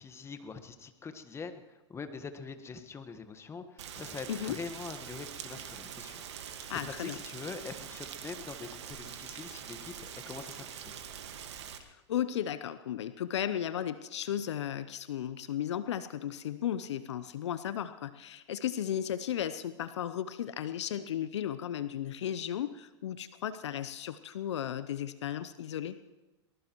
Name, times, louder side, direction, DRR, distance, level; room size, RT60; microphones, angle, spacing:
voice 1, 0.0-6.2 6.7-10.9, left 5 dB, 15° left, 9 dB, 1.4 m, -44 dB
Rain, 3.8-11.8, right 8 dB, 65° right, 1.7 m, -44 dB
voice 2, 6.7-7.2 12.1-26.0, left 10 dB, 70° left, 13 dB, 0.7 m, -35 dB
23.5 x 20.0 x 3.1 m, 1.1 s
hypercardioid pair, 100°, 15 cm